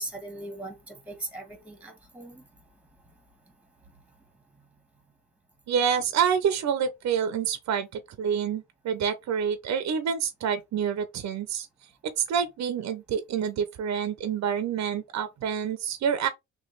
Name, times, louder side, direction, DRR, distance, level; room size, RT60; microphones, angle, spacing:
voice 1, 0.0-2.4, right 2 dB, 5° right, 1.3 m, -39 dB
voice 2, 5.7-11.7 12.0-16.3, right 7 dB, 65° right, 0.7 m, -27 dB
3.2 x 2.5 x 3.9 m
cardioid pair, 90°, 30 cm